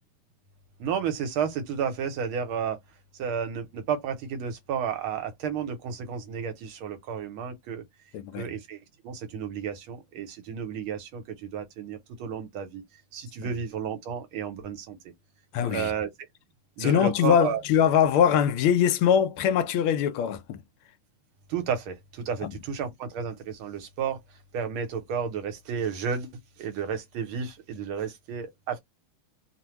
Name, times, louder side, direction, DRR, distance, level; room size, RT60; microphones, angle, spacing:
voice 1, 0.8-2.8 3.1-7.8 8.4-12.8 13.1-15.0 15.6-16.1 16.8-17.6 21.5-24.2 24.5-26.3 26.6-28.8, right 7 dB, 75° right, 1.7 m, -32 dB
voice 2, 8.1-8.5 15.5-15.9 16.8-20.6 22.4-22.5, left 8 dB, 80° left, 1.4 m, -22 dB
3.6 x 2.1 x 2.9 m
omnidirectional pair, 2.4 m